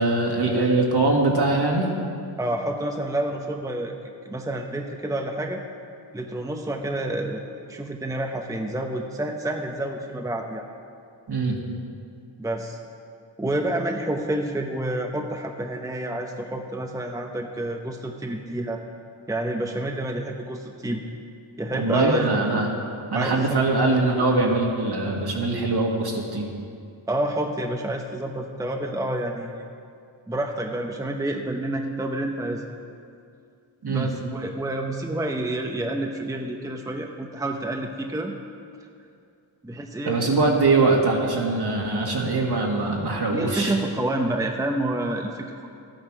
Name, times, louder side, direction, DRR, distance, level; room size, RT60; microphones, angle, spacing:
voice 1, 0.0-1.9 11.3-11.6 21.7-22.7 23.1-26.5 33.8-34.1 40.1-43.7, right 3 dB, 55° right, 0 dB, 2.0 m, -22 dB
voice 2, 2.3-3.9 4.2-5.6 6.1-7.4 7.7-10.6 12.4-12.8 13.4-18.8 19.3-21.0 21.6-22.3 23.1-23.6 27.1-29.6 30.3-32.6 33.8-38.3 39.6-40.2 43.3-45.7, right 1 dB, 5° right, 3 dB, 0.7 m, -28 dB
13.5 x 9.0 x 6.1 m, 2.4 s
wide cardioid pair, 100°, 47 cm